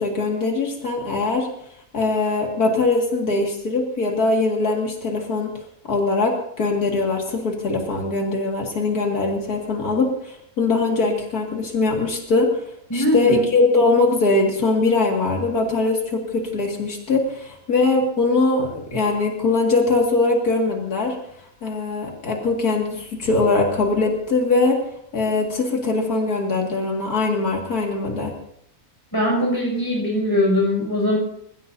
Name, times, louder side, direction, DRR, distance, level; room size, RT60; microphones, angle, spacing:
voice 1, 0.0-1.5 1.9-5.5 5.9-12.5 12.9-21.2 21.6-24.8 25.1-28.3, left 3 dB, 80° left, 0 dB, 2.7 m, -21 dB
voice 2, 12.9-13.3 29.1-31.2, left 1 dB, 15° left, -2 dB, 6.7 m, -21 dB
28.0 x 15.5 x 2.7 m, 0.72 s
omnidirectional pair, 1.6 m